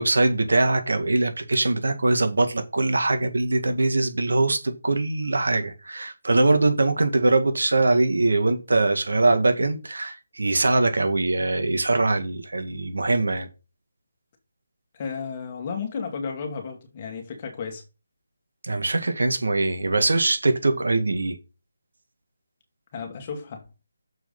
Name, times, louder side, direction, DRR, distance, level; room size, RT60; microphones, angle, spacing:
voice 1, 0.0-13.5 18.6-21.4, right 2 dB, 75° right, 2.0 m, -22 dB
voice 2, 14.9-17.8 22.9-23.7, left 5 dB, 30° left, 2.3 m, -33 dB
7.0 x 5.6 x 5.5 m
figure-of-eight pair, 160°, 0 cm